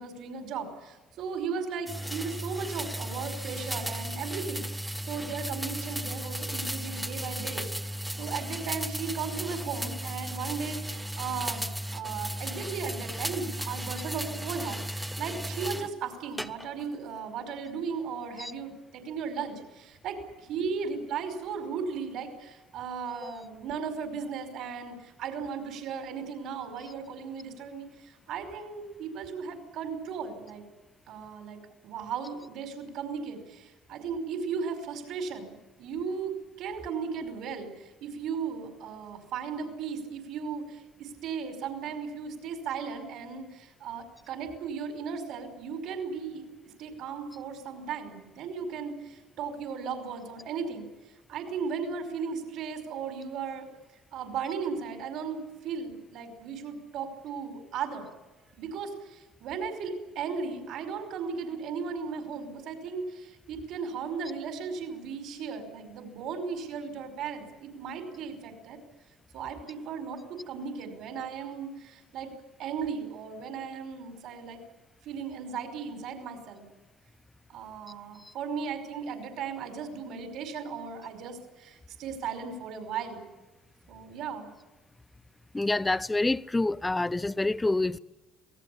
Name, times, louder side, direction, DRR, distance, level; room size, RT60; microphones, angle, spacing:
voice 1, 0.0-30.7 31.1-46.5 46.8-50.9 51.3-53.7 54.1-58.1 58.5-68.8 69.3-72.3 72.6-74.6 75.0-76.6 77.5-83.2 83.9-84.5, right 6 dB, 60° right, 5.2 m, -36 dB
sound 1, 1.9-15.9 16.4-16.9, equal, 5° right, 1.1 m, -35 dB
voice 2, 85.5-88.0, left 2 dB, 10° left, 0.7 m, -27 dB
26.5 x 18.5 x 8.7 m
cardioid pair, 115°, 0 cm